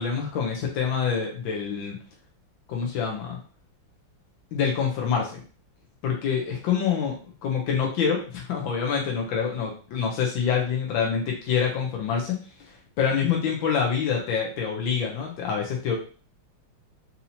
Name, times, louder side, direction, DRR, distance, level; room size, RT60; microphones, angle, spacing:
voice 1, 0.0-2.0 2.7-3.4 4.5-5.4 6.0-7.1 7.4-12.3 12.6-16.0, left 6 dB, 80° left, -1 dB, 1.5 m, -26 dB
4.1 x 2.8 x 2.7 m, 0.39 s
omnidirectional pair, 2.1 m